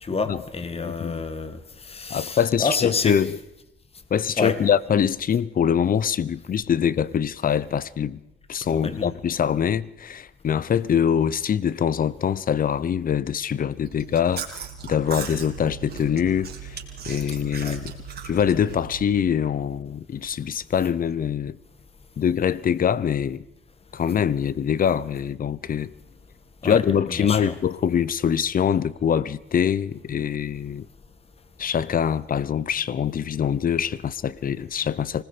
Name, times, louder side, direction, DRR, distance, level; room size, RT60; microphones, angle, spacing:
voice 1, 0.0-3.2 4.4-4.6 8.7-9.1 17.6-17.8 26.6-26.8 27.2-27.6, left 4 dB, 30° left, 1.9 m, -28 dB
voice 2, 0.7-1.2 2.1-3.4 4.1-8.2 8.5-16.8 17.1-17.9 18.2-21.6 22.2-23.4 23.9-25.9 26.6-30.9 31.6-35.2, left 8 dB, 45° left, 0.8 m, -24 dB
Chewing mastication, 13.8-19.2, right 6 dB, 55° right, 3.5 m, -37 dB
26.0 x 19.5 x 5.1 m
cardioid pair, 90°, 20 cm